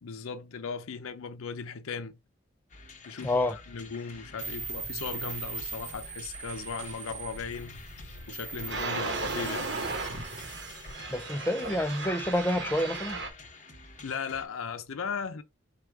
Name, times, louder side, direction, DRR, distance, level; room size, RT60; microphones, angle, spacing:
voice 1, 0.0-2.2 3.0-7.8 8.3-9.8 14.0-15.4, left 5 dB, 90° left, 0.6 m, -37 dB
sound 1, 2.7-14.5, left 3 dB, 35° left, 0.9 m, -49 dB
voice 2, 3.2-3.5 11.1-13.2, left 1 dB, 10° left, 0.4 m, -28 dB
sound 2, 4.4-13.3, right 3 dB, 55° right, 1.0 m, -37 dB
4.8 x 2.4 x 4.5 m
head